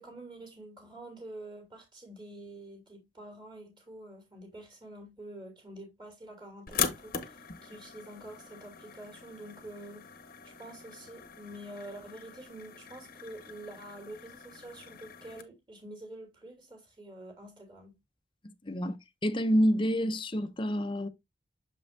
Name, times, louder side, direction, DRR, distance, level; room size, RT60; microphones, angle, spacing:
voice 1, 0.0-10.1 10.4-17.9, right 1 dB, 25° right, 3.1 m, -47 dB
sound 1, 6.7-15.4, left 7 dB, 50° left, 0.9 m, -40 dB
voice 2, 18.6-19.0 19.2-21.1, equal, 25° left, 0.6 m, -27 dB
7.1 x 5.5 x 2.7 m
head